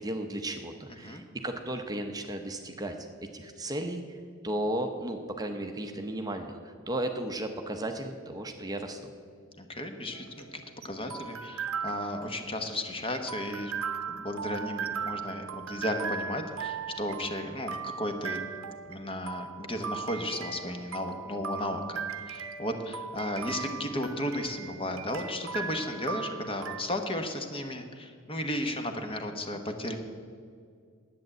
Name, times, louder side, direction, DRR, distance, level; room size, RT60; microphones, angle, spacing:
voice 1, 0.0-2.9 3.3-4.0 4.4-9.1, right 1 dB, 20° right, 5 dB, 0.7 m, -34 dB
voice 2, 9.6-13.7 14.1-18.4 18.9-30.0, left 1 dB, 25° left, 5 dB, 1.1 m, -34 dB
sound 1, 10.1-26.8, right 6 dB, 80° right, 0.8 m, -38 dB
10.5 x 8.6 x 7.8 m, 2.2 s
head